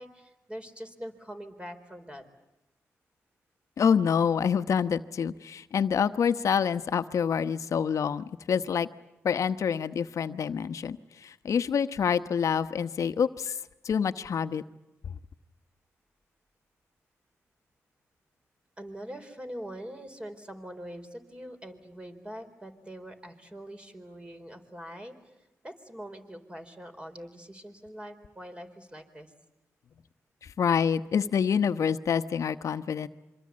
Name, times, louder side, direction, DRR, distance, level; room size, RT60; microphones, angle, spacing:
voice 1, 0.0-2.2 18.8-29.3, equal, 20° right, 6 dB, 4.5 m, -43 dB
voice 2, 3.8-8.9 9.2-13.6 13.8-14.6 15.0-15.1 30.4-33.1, left 7 dB, 65° left, 11 dB, 1.1 m, -27 dB
26.5 x 25.0 x 8.7 m, 0.95 s
cardioid pair, 65°, 6 cm